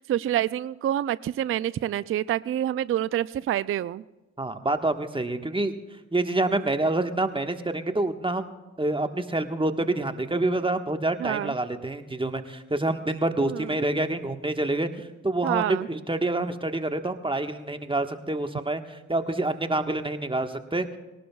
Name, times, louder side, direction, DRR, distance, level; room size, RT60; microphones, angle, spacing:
voice 1, 0.0-4.0 11.2-11.5 13.4-13.8 15.4-15.9, right 12 dB, 35° right, 18 dB, 0.4 m, -27 dB
voice 2, 4.4-5.7 6.1-8.4 8.8-20.9, right 2 dB, 15° right, 7 dB, 1.5 m, -27 dB
21.0 x 18.5 x 2.4 m, 1.1 s
hypercardioid pair, 40°, 36 cm